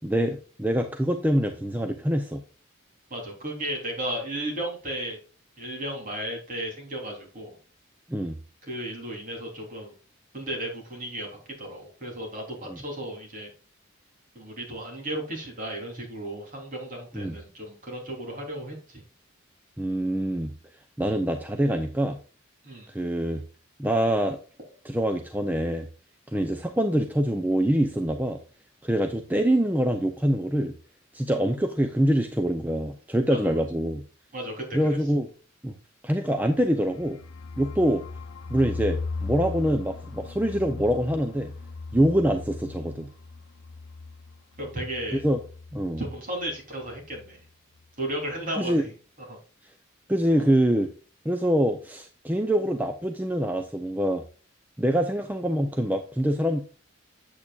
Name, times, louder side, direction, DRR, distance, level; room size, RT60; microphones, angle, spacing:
voice 1, 0.0-2.4 8.1-8.4 12.7-12.8 17.1-17.4 19.8-20.5 21.0-22.2 22.9-23.4 23.8-24.4 24.8-25.9 26.3-28.4 28.8-30.7 31.1-34.0 34.7-35.3 35.6-35.7 36.0-37.2 37.6-38.0 38.5-41.5 41.9-43.1 45.1-45.4 45.7-46.0 48.6-48.8 50.1-50.9 51.2-54.2 54.8-56.6, right 1 dB, 10° right, 6 dB, 0.6 m, -25 dB
voice 2, 3.1-5.2 5.6-7.6 8.6-9.9 10.3-13.5 14.3-19.0 22.6-22.9 33.3-33.6 34.3-34.8 44.6-45.2 46.0-47.4 48.0-48.8 49.3-49.4, right 1 dB, 40° right, 0 dB, 3.5 m, -34 dB
sound 1, 36.6-46.2 46.4-46.6 46.8-47.3, left 3 dB, 85° left, 0.7 m, -38 dB
8.5 x 8.5 x 2.4 m, 0.37 s
head